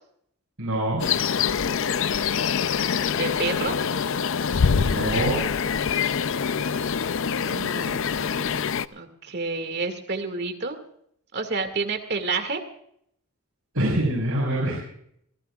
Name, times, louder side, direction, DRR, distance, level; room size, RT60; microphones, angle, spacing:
voice 1, 0.6-1.0 4.7-5.4 13.7-14.8, right 1 dB, 70° right, -4 dB, 5.7 m, -25 dB
sound 1, 1.0-8.9, left 6 dB, 60° left, 0.5 m, -25 dB
voice 2, 2.9-3.8 7.4-10.8 11.3-12.6, right 3 dB, 50° right, 6 dB, 2.2 m, -30 dB
27.0 x 15.0 x 2.4 m, 0.70 s
head